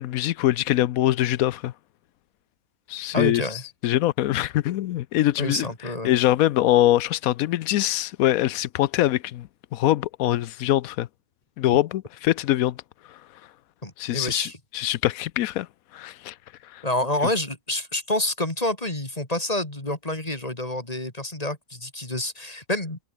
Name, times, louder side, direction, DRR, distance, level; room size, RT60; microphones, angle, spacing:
voice 1, 0.0-1.7 2.9-3.4 3.8-5.7 6.0-11.1 11.6-12.8 14.0-15.7 15.9-16.3 16.7-16.8, left 14 dB, 80° left, 1.0 m, -23 dB
voice 2, 3.1-3.6 5.4-6.2 13.8-14.6 16.8-23.0, left 1 dB, 25° left, 3.4 m, -28 dB
omnidirectional pair, 1.5 m